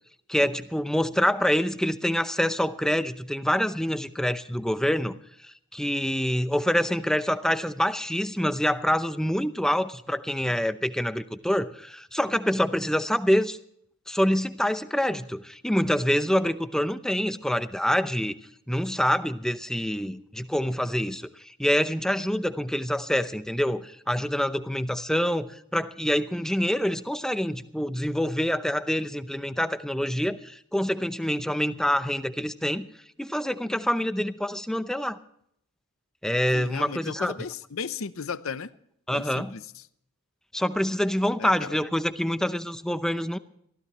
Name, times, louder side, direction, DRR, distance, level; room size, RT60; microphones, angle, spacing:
voice 1, 0.3-13.6 14.1-18.4 18.7-32.9 33.2-35.2 36.2-37.3 39.1-39.5 40.5-43.4, equal, ahead, 11 dB, 0.6 m, -26 dB
voice 2, 36.5-38.7 39.1-39.6 41.4-41.8, left 5 dB, 65° left, 14 dB, 0.7 m, -35 dB
22.5 x 15.5 x 3.1 m, 0.70 s
head